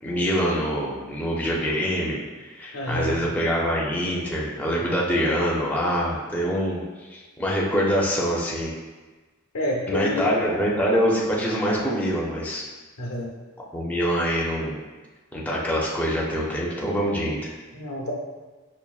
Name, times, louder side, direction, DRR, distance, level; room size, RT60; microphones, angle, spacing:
voice 1, 0.0-2.2 2.5-8.7 9.9-12.6 13.7-14.8 15.3-17.5, equal, 5° left, -5 dB, 0.5 m, -25 dB
voice 2, 2.7-3.3 9.5-10.3 13.0-13.4 17.7-18.1, equal, 85° left, -1 dB, 0.7 m, -28 dB
5.4 x 2.5 x 2.3 m, 1.3 s
head